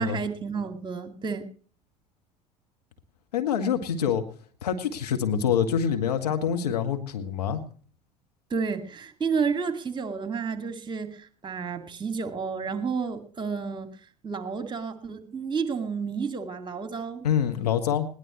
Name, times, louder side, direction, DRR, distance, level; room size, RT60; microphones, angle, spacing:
voice 1, 0.0-1.5 8.5-13.9 14.2-17.3, right 5 dB, 20° right, 9 dB, 2.1 m, -31 dB
voice 2, 3.3-4.2 4.6-7.6 17.2-18.1, left 8 dB, 70° left, 5 dB, 1.8 m, -26 dB
20.5 x 18.0 x 3.1 m, 0.42 s
figure-of-eight pair, 65°, 21 cm